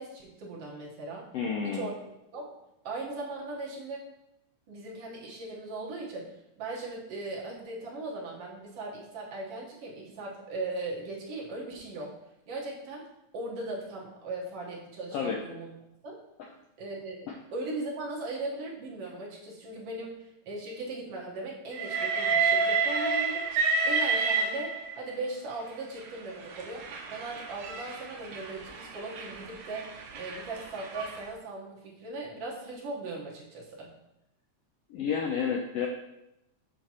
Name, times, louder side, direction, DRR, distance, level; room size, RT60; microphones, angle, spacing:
voice 1, 0.0-1.2 1.6-2.0 2.3-2.5 2.8-4.0 4.7-12.1 12.5-13.0 13.3-15.7 16.0-16.2 16.8-23.5 23.9-33.9, right 2 dB, 60° right, -3 dB, 2.1 m, -38 dB
voice 2, 1.3-1.9 15.1-15.4 34.9-35.9, left 6 dB, 80° left, 1 dB, 1.5 m, -30 dB
Train, 21.7-25.1 26.0-31.2, right 4 dB, 85° right, 1.1 m, -30 dB
7.7 x 5.8 x 2.9 m, 0.87 s
omnidirectional pair, 3.3 m